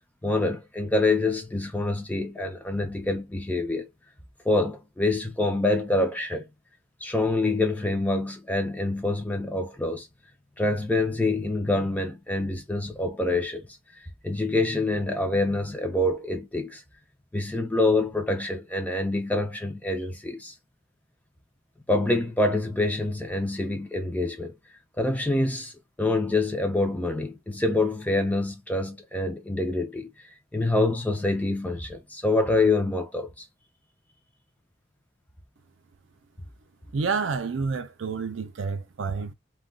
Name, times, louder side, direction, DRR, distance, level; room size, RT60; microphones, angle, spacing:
voice 1, 0.2-3.9 4.5-6.5 7.0-10.1 10.6-13.7 14.2-16.8 17.3-20.5 21.9-24.5 25.0-25.7 26.0-30.1 30.5-33.5, left 2 dB, 10° left, 0.5 m, -26 dB
voice 2, 36.9-39.3, right 5 dB, 70° right, 0.4 m, -29 dB
2.3 x 2.2 x 3.7 m
head